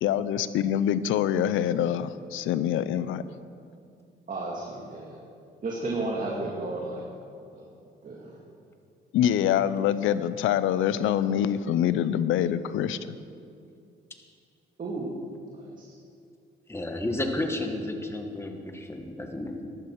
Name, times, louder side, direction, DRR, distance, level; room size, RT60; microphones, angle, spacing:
voice 1, 0.0-3.2 9.1-13.2, left 10 dB, 85° left, 14 dB, 0.6 m, -25 dB
voice 2, 4.3-5.1 5.6-7.0 7.5-7.7 8.0-8.3 14.8-15.1 15.5-15.7, right 2 dB, 40° right, -3 dB, 2.2 m, -33 dB
voice 3, 16.7-19.7, left 1 dB, 10° left, 4 dB, 1.7 m, -32 dB
14.5 x 11.5 x 4.7 m, 2.4 s
cardioid pair, 90°, 20 cm